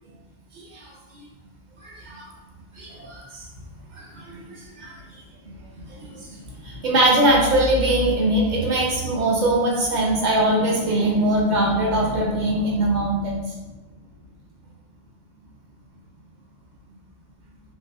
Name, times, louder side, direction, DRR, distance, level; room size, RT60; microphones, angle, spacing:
voice 1, 0.5-0.9 1.8-2.3 2.8-3.5 3.9-5.0 6.0-13.6, right 1 dB, 45° right, -2 dB, 0.7 m, -22 dB
3.3 x 2.5 x 2.5 m, 1.1 s
omnidirectional pair, 1.3 m